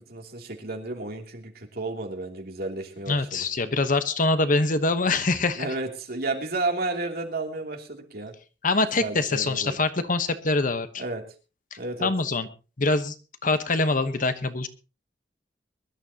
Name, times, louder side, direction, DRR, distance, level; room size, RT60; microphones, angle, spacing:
voice 1, 0.0-3.4 5.6-8.3 9.0-9.8 11.0-11.2 11.8-12.1, right 2 dB, 60° right, 2 dB, 2.9 m, -32 dB
voice 2, 3.1-5.7 8.6-11.0 12.0-12.5 12.8-13.1 13.4-14.7, left 3 dB, 50° left, 11 dB, 1.1 m, -24 dB
23.0 x 12.0 x 2.9 m, 0.33 s
head